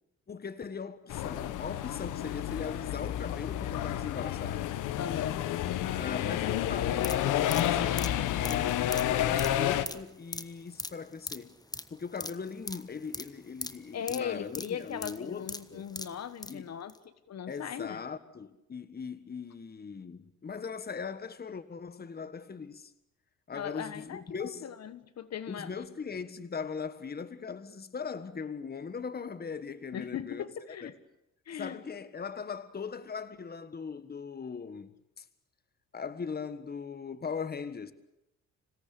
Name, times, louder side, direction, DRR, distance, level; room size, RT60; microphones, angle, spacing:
voice 1, 0.3-4.7 6.0-11.5 11.9-15.8 16.5-16.7 17.5-22.9 23.5-24.7 25.5-30.4 30.8-30.9 31.6-34.9 35.2-35.3 35.9-37.9, left 5 dB, 30° left, 1.5 m, -39 dB
sound 1, 1.1-9.9, left 12 dB, 90° left, 1.3 m, -30 dB
voice 2, 5.0-5.5 13.9-16.9 17.3-18.0 23.5-25.9 29.9-31.0 31.5-31.8, left 8 dB, 60° left, 1.5 m, -38 dB
sound 2, 6.9-16.6 16.9-17.0, left 2 dB, 10° left, 1.2 m, -41 dB
26.5 x 17.0 x 8.5 m
cardioid pair, 90°, 30 cm